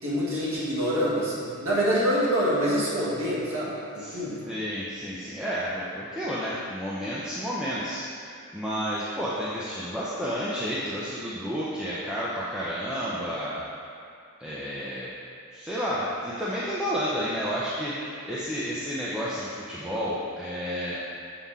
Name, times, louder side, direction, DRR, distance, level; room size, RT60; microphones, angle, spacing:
voice 1, 0.0-4.4, equal, 75° right, -9 dB, 1.7 m, -26 dB
voice 2, 4.0-13.6 14.4-15.1 15.5-21.0, equal, 5° right, -9 dB, 0.6 m, -31 dB
7.0 x 5.7 x 3.6 m, 2.5 s
head